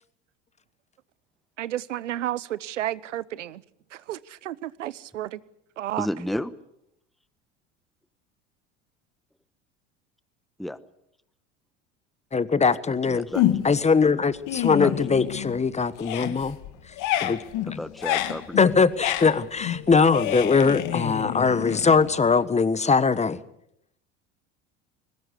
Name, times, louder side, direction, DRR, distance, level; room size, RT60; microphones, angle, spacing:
voice 1, 1.6-3.6 3.9-5.4 5.8-6.1, right 13 dB, 85° right, 20 dB, 0.9 m, -32 dB
voice 2, 6.0-6.5 10.6-10.8 13.0-13.4 14.7-14.9 17.7-18.6, left 1 dB, ahead, 15 dB, 1.1 m, -31 dB
voice 3, 12.3-13.3 13.6-16.6 17.2-17.4 17.7-17.8 18.6-23.4, left 5 dB, 20° left, 16 dB, 1.3 m, -21 dB
sound 1, 13.3-13.9 14.3-15.6 15.9-22.4, left 12 dB, 60° left, 1.9 m, -28 dB
21.5 x 19.0 x 8.4 m, 0.77 s
hypercardioid pair, 75°, 36 cm